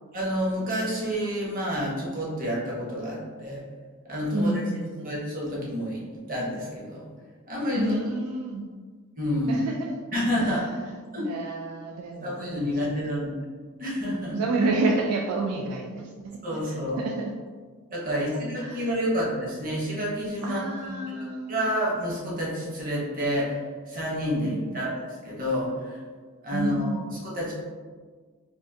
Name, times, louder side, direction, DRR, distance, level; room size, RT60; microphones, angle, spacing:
voice 1, 0.1-3.6 4.1-4.5 5.0-7.0 7.5-7.9 9.2-9.6 10.1-10.6 11.1-11.2 12.2-13.3 13.8-14.4 16.4-17.0 17.9-21.0 21.5-23.6 23.9-26.0 26.4-27.5, equal, 40° right, -4 dB, 0.8 m, -29 dB
voice 2, 4.3-5.2 7.8-8.7 9.5-10.0 10.4-10.9 11.2-13.0 14.3-16.4 16.7-17.3 18.1-18.2 18.6-18.9 20.4-21.7 24.4-24.9 26.5-27.0, right 2 dB, 80° right, 3 dB, 0.3 m, -30 dB
3.7 x 2.4 x 2.5 m, 1.5 s
head